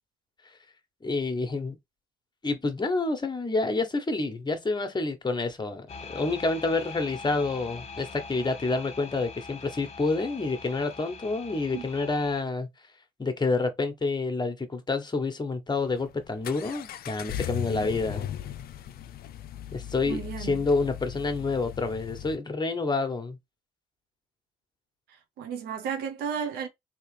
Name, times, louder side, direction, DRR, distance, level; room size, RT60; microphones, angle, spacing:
voice 1, 1.0-1.7 2.4-12.7 13.2-18.3 19.7-23.4, left 3 dB, 25° left, 1.1 m, -28 dB
sound 1, 5.9-12.4, left 5 dB, 40° left, 1.3 m, -43 dB
Accelerating revving vroom, 15.8-22.4, left 11 dB, 70° left, 0.4 m, -38 dB
voice 2, 20.1-20.6 25.1-26.7, right 7 dB, 85° right, 0.8 m, -34 dB
3.2 x 2.9 x 3.2 m
supercardioid pair, 55°, 16 cm